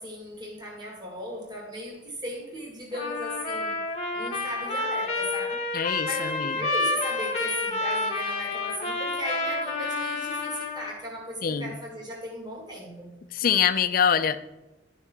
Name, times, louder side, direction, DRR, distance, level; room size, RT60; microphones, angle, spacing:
voice 1, 0.0-3.8 4.1-5.7 6.0-13.2, equal, 25° right, -1 dB, 1.7 m, -37 dB
Trumpet, 2.9-11.0, left 2 dB, 35° left, 1.1 m, -29 dB
voice 2, 5.7-6.5 11.4-11.8 13.3-14.4, left 7 dB, 50° left, 12 dB, 0.5 m, -24 dB
11.5 x 5.5 x 3.5 m, 1.1 s
head